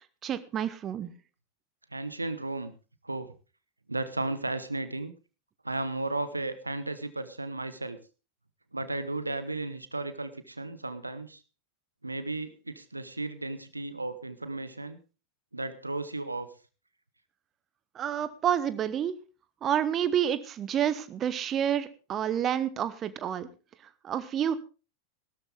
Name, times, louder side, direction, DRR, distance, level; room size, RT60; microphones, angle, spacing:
voice 1, 0.2-1.1 17.9-19.1 19.6-23.5 24.0-24.6, right 9 dB, 30° right, 14 dB, 1.1 m, -29 dB
voice 2, 1.9-2.7 3.0-3.3 3.9-5.1 5.6-8.0 8.7-11.4 12.0-15.0 15.5-16.5, right 2 dB, 80° right, 13 dB, 1.2 m, -34 dB
16.5 x 13.0 x 3.5 m, 0.33 s
figure-of-eight pair, 90°, 0 cm